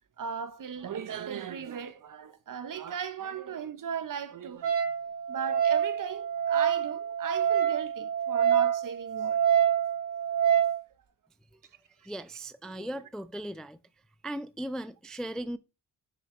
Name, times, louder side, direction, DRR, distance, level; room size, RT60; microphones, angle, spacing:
voice 1, 0.2-4.9 5.3-9.4 12.7-12.9 15.4-15.5, right 7 dB, 55° right, 1.0 m, -37 dB
Wind instrument woodwind instrument, 4.6-10.8, right 9 dB, 85° right, 2.2 m, -26 dB
voice 2, 12.0-13.8 14.2-15.6, right 1 dB, ahead, 0.3 m, -37 dB
7.2 x 6.4 x 3.2 m
cardioid pair, 75°, 39 cm